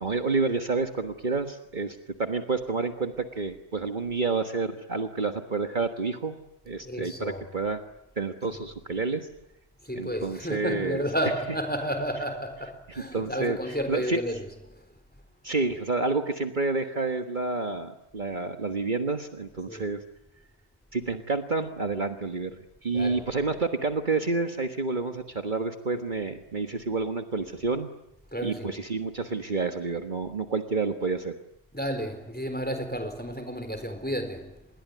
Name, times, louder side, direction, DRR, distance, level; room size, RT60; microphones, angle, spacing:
voice 1, 0.0-6.4 6.7-7.8 8.2-9.3 10.0-11.0 13.1-13.6 13.9-14.2 15.4-20.0 20.9-27.9 28.4-31.4, right 3 dB, 45° right, 1.6 m, -29 dB
voice 2, 6.8-7.5 8.5-8.6 9.8-15.2 19.7-19.9 22.9-23.3 28.3-28.8 31.7-34.7, equal, 10° left, 4.1 m, -32 dB
27.0 x 21.5 x 9.6 m
omnidirectional pair, 1.1 m